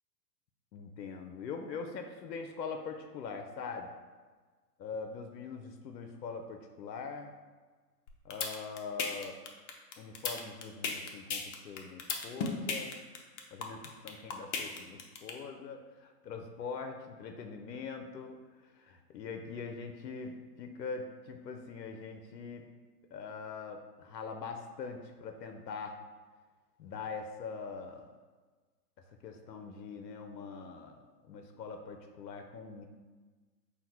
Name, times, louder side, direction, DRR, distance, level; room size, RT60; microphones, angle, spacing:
voice 1, 0.7-3.9 4.8-7.3 8.2-9.4 10.0-13.0 13.5-18.4 18.8-22.7 23.1-26.0 26.8-28.1 29.2-32.9, left 5 dB, 85° left, 5 dB, 0.6 m, -42 dB
sound 1, 8.1-15.3, left 5 dB, 50° left, 0.6 m, -34 dB
4.0 x 2.2 x 4.3 m, 1.4 s
hypercardioid pair, 125°, 49 cm